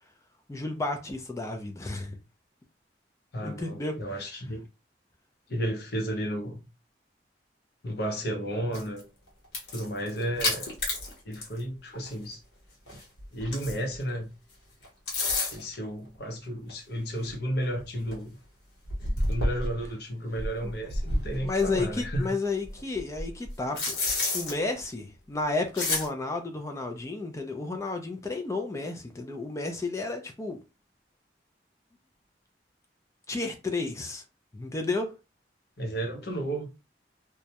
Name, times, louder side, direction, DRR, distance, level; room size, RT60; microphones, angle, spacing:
voice 1, 0.5-2.2 3.4-4.0 20.6-20.7 21.4-24.0 24.3-30.6 33.3-34.2 34.5-35.1, left 3 dB, 15° left, 0.3 m, -32 dB
voice 2, 3.3-4.7 5.5-6.6 7.8-9.0 9.7-10.7 11.2-12.4 13.3-14.3 15.5-18.4 19.3-22.4 35.8-36.7, equal, 60° left, 0.7 m, -33 dB
sound 1, 8.7-9.0 9.4-11.6 11.9-12.1 12.9-14.0 14.8-15.7 16.7-16.8 17.3-17.4 17.8-17.9 18.1-18.2 18.9-19.9 20.4-22.2 22.6-24.5 25.7-26.1, left 2 dB, 75° left, 1.0 m, -30 dB
2.3 x 2.0 x 2.8 m
head